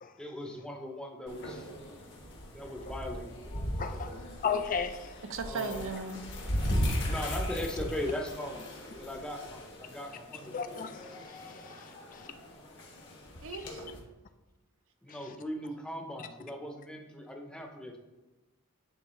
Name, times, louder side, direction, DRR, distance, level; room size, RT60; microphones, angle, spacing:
voice 1, 0.2-1.7 2.5-3.3 3.9-4.2 5.5-5.9 7.0-8.6 8.9-10.7 15.0-18.0, left 1 dB, 5° left, 0.7 m, -39 dB
sound 1, 1.3-14.0, equal, 55° left, 1.4 m, -37 dB
voice 2, 3.8-4.2 4.4-5.1 10.5-12.3 13.6-13.7, left 6 dB, 35° left, 0.4 m, -35 dB
voice 3, 5.3-6.2 13.4-13.8, right 4 dB, 60° right, 0.6 m, -36 dB
10.0 x 3.5 x 3.1 m
head